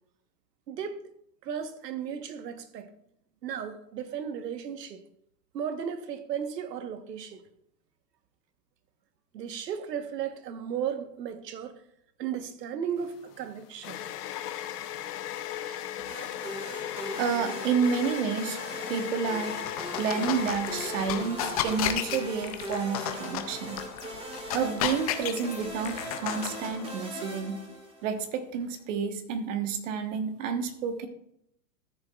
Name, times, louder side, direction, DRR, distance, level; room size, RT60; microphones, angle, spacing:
voice 1, 0.7-1.0 1.4-2.9 3.4-5.0 5.5-7.4 9.3-11.8 12.2-14.0 15.7-15.9, right 8 dB, 85° right, 1.2 m, -35 dB
sound 1, 13.0-21.7, left 12 dB, 75° left, 0.9 m, -37 dB
sound 2, 16.1-28.3, right 1 dB, 10° right, 1.6 m, -40 dB
voice 2, 17.1-18.6 18.9-19.6 20.0-23.8 24.5-27.6 28.0-31.1, right 6 dB, 50° right, 1.3 m, -30 dB
sound 3, 19.5-27.0, left 10 dB, 25° left, 0.4 m, -34 dB
13.0 x 7.2 x 2.4 m
hypercardioid pair, 140°, 48 cm